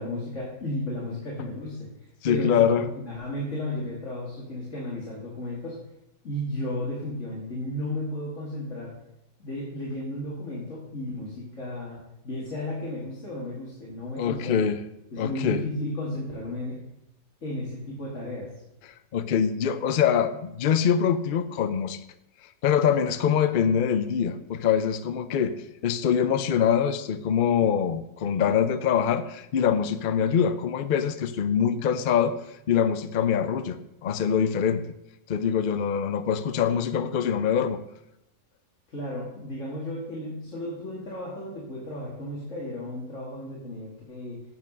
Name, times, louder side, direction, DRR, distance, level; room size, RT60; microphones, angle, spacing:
voice 1, 0.0-5.8 6.2-8.9 9.4-12.0 12.2-14.6 15.1-16.8 17.4-18.5 38.9-44.4, left 1 dB, 50° left, -6 dB, 2.4 m, -34 dB
voice 2, 2.2-2.8 14.2-14.8 15.2-15.6 19.1-22.0 22.6-25.6 25.8-32.4 32.7-34.8 35.3-37.8, left 8 dB, 85° left, 11 dB, 0.4 m, -24 dB
9.1 x 6.1 x 6.1 m, 0.85 s
omnidirectional pair, 1.7 m